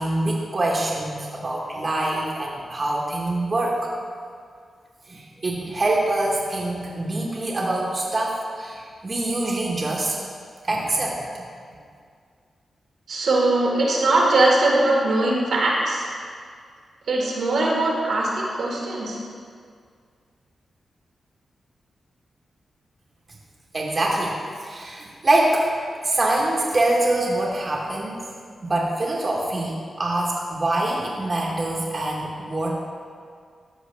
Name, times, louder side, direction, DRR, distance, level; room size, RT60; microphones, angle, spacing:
voice 1, 0.0-3.9 5.1-10.2 10.6-11.4 23.7-24.4 24.6-25.7 26.0-28.2 28.6-32.8, right 2 dB, 40° right, -3 dB, 1.2 m, -24 dB
voice 2, 13.1-16.1 17.1-19.2, right 2 dB, 80° right, -3 dB, 1.8 m, -21 dB
13.5 x 4.8 x 3.4 m, 2.1 s
cardioid pair, 65°, 0 cm